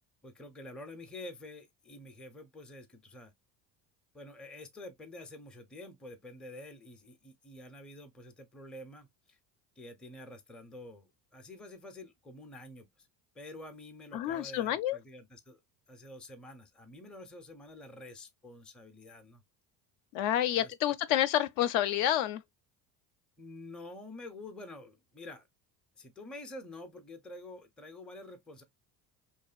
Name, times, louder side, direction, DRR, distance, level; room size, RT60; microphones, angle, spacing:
voice 1, 0.2-3.3 4.1-9.4 9.8-13.1 13.3-15.6 15.9-19.4 20.6-21.2 23.4-25.5 26.0-28.6, left 1 dB, ahead, 0.4 m, -48 dB
voice 2, 14.1-15.0 20.1-22.4, left 12 dB, 65° left, 0.5 m, -29 dB
2.6 x 2.4 x 2.2 m
hypercardioid pair, 75°, 48 cm